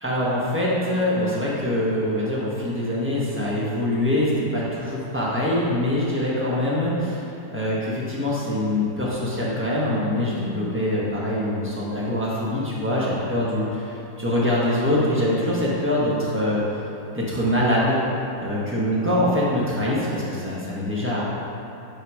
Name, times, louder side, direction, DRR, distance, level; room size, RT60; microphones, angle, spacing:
voice 1, 0.0-16.6 17.1-18.0 18.4-21.2, left 1 dB, 10° right, -7 dB, 1.2 m, -24 dB
6.3 x 4.9 x 4.9 m, 2.9 s
omnidirectional pair, 1.6 m